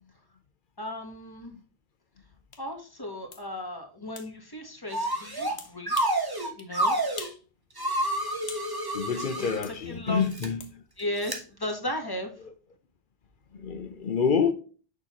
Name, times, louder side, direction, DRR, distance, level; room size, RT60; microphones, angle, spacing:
voice 1, 0.8-1.6 2.6-6.3 6.6-7.0 9.4-10.3 11.0-12.3, left 1 dB, 20° left, 1.4 m, -36 dB
sound 1, 2.5-2.6 3.3-3.4 4.2-4.3 5.6-6.2 6.6-6.7 7.2-7.4 7.8-8.7 9.6-9.8 10.6-10.7, left 6 dB, 90° left, 1.2 m, -43 dB
sound 2, 4.9-5.6 5.9-7.3 7.8-9.6 10.2-10.5 11.2-11.4, right 1 dB, 25° right, 1.1 m, -29 dB
voice 2, 8.9-10.8 13.5-14.5, left 6 dB, 60° left, 0.9 m, -27 dB
6.7 x 5.5 x 3.0 m
omnidirectional pair, 1.0 m